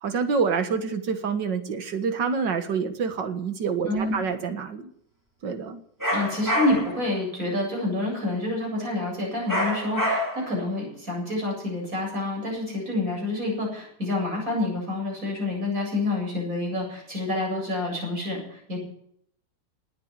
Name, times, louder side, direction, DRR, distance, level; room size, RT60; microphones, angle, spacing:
voice 1, 0.0-4.9 5.4-5.8, right 5 dB, 75° right, 8 dB, 2.2 m, -27 dB
sound 1, 6.0-7.0 9.5-10.6, equal, 10° right, 2.7 m, -26 dB
voice 2, 6.1-18.8, left 2 dB, 45° right, -1 dB, 8.5 m, -28 dB
18.5 x 9.2 x 8.1 m, 0.67 s
omnidirectional pair, 2.0 m